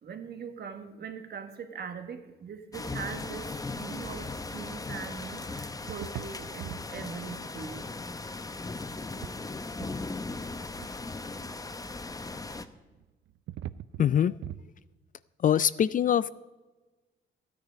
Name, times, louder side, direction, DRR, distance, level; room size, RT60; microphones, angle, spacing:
voice 1, 0.0-7.8, right 6 dB, 55° right, 7 dB, 1.5 m, -41 dB
sound 1, 2.7-12.7, left 3 dB, 20° left, 0.7 m, -38 dB
sound 2, 4.7-5.4 5.9-6.9 7.7-7.8 8.9-9.4 9.6-10.4 10.8-10.9 12.8-14.7, right 12 dB, 70° right, 0.5 m, -43 dB
voice 2, 14.0-14.3 15.4-16.3, left 9 dB, 45° left, 18 dB, 0.4 m, -23 dB
13.5 x 9.5 x 5.2 m, 1.2 s
cardioid pair, 90°, 20 cm